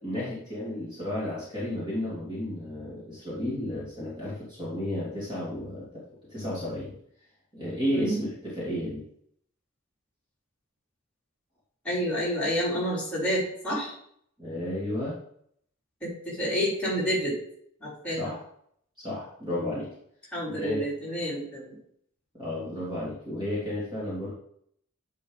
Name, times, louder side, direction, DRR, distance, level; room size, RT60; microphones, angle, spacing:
voice 1, 0.0-6.0 6.3-7.0 7.5-9.0 14.4-15.1 18.2-18.4 19.0-19.9 20.5-20.8 22.3-24.3, left 1 dB, 20° right, -7 dB, 3.0 m, -32 dB
voice 2, 7.9-8.2 11.8-13.9 16.0-17.4 17.8-18.2 19.6-19.8 20.3-21.8, equal, 5° left, -8 dB, 3.7 m, -29 dB
9.7 x 5.4 x 4.0 m, 0.66 s
head